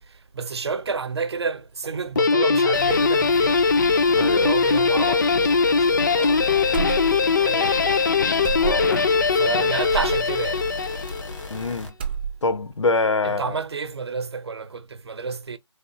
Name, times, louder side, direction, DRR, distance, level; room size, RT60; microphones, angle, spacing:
voice 1, 0.3-3.6 4.1-6.4 7.4-8.0 9.3-10.6 13.2-15.6, right 5 dB, 60° right, 0.7 m, -30 dB
Guitar, 2.2-11.5, left 4 dB, 40° left, 0.4 m, -20 dB
sound 1, 2.7-11.9, left 2 dB, 90° left, 1.6 m, -37 dB
voice 2, 4.1-4.5 8.6-9.1 11.5-11.9 12.4-13.5, left 3 dB, 75° left, 0.7 m, -25 dB
sound 2, 6.7-7.4 7.6-7.8 8.4-9.1 9.9-10.2 11.1-11.6 11.9-12.6, right 7 dB, 20° right, 0.5 m, -30 dB
4.0 x 3.5 x 2.7 m
figure-of-eight pair, 155°, 16 cm